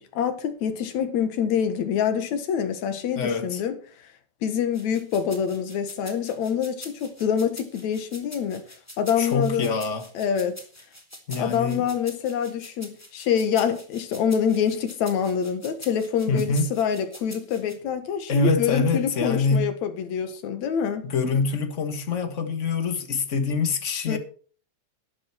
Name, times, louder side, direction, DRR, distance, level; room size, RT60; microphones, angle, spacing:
voice 1, 0.0-3.8 4.4-8.6 9.0-9.7 10.2-10.6 11.4-21.1 24.1-24.2, left 8 dB, 65° left, 2.8 m, -26 dB
voice 2, 3.1-3.6 9.2-10.1 11.3-11.9 16.3-16.7 18.3-19.7 21.0-24.2, left 4 dB, 45° left, 0.9 m, -25 dB
sound 1, 4.7-17.7, left 1 dB, 5° left, 2.1 m, -45 dB
12.0 x 11.5 x 4.6 m
omnidirectional pair, 3.6 m